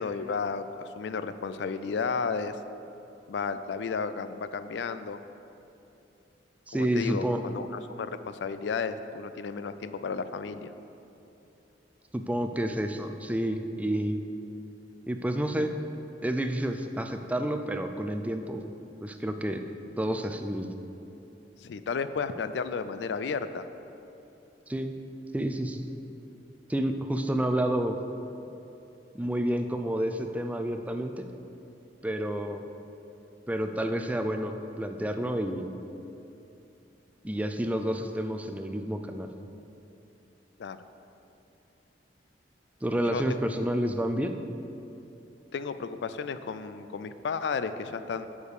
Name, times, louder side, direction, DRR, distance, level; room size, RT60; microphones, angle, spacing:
voice 1, 0.0-2.6 3.3-5.2 6.7-10.7 21.6-23.6 40.6-40.8 43.1-43.4 45.5-48.3, left 5 dB, 75° left, 12 dB, 0.4 m, -33 dB
voice 2, 6.7-7.4 12.1-14.2 15.1-15.7 16.2-18.6 19.0-19.6 20.0-20.7 24.7-24.9 25.3-25.8 26.7-28.0 29.1-31.3 32.0-32.6 33.5-35.7 37.2-39.3 42.8-44.3, right 1 dB, 10° right, 6 dB, 0.4 m, -29 dB
7.2 x 6.6 x 4.8 m, 2.9 s
head